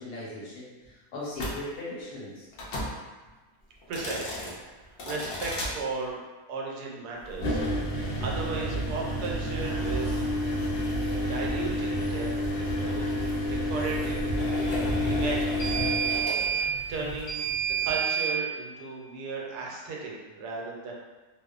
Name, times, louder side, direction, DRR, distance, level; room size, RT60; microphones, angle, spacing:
voice 1, 0.0-2.5, left 2 dB, 85° left, -6 dB, 1.4 m, -39 dB
sound 1, 1.4-1.6 2.5-2.9 3.8-4.5 5.0-5.7 7.3-18.3, right 1 dB, 70° left, 0.6 m, -29 dB
voice 2, 3.9-6.2 6.5-7.6 8.2-10.2 11.3-13.1 13.5-14.5 15.0-15.6 16.5-17.5 17.8-20.9, right 3 dB, 80° right, -2 dB, 1.1 m, -35 dB
2.8 x 2.0 x 2.3 m, 1.2 s
omnidirectional pair, 1.7 m